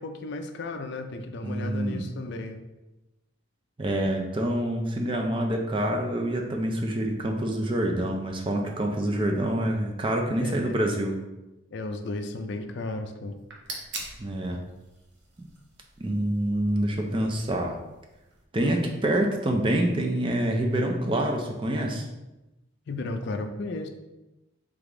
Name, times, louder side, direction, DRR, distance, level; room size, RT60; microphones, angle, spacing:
voice 1, 0.0-2.6 10.4-10.8 11.7-13.4 22.9-23.9, left 2 dB, 55° left, 7 dB, 0.4 m, -34 dB
voice 2, 1.4-2.0 3.8-11.2 14.2-14.6 16.0-17.8 18.5-22.1, right 1 dB, 25° right, 2 dB, 0.5 m, -26 dB
sound 1, 13.2-18.4, right 2 dB, 60° right, 0.8 m, -44 dB
3.5 x 3.5 x 3.7 m, 1.0 s
head